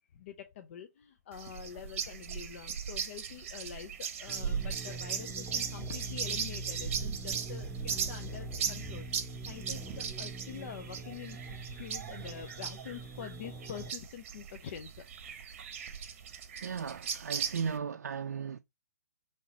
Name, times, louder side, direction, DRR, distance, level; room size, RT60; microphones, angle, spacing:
voice 1, 0.1-9.1 9.5-11.4 11.8-14.9, left 8 dB, 45° left, 0.5 m, -46 dB
sound 1, 1.3-17.8, right 7 dB, 50° right, 0.8 m, -38 dB
sound 2, 4.3-13.9, right 1 dB, 10° right, 2.6 m, -44 dB
voice 2, 16.6-18.6, right 6 dB, 70° right, 0.4 m, -36 dB
5.4 x 3.3 x 2.8 m
figure-of-eight pair, 130°, 9 cm